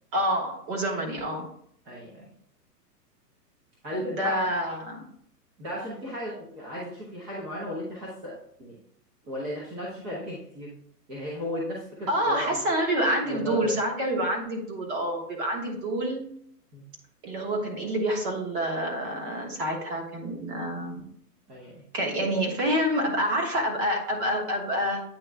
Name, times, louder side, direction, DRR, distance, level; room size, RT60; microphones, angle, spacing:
voice 1, 0.1-1.5 4.0-5.0 12.1-16.2 17.2-21.0 21.9-25.0, equal, 30° right, 1 dB, 1.4 m, -27 dB
voice 2, 1.8-2.3 3.8-4.4 5.6-8.8 9.2-10.7 11.1-12.5 13.3-13.7 16.7-16.8 21.5-21.8, equal, 15° right, -6 dB, 0.8 m, -35 dB
8.8 x 3.1 x 3.4 m, 0.67 s
hypercardioid pair, 160°, 49 cm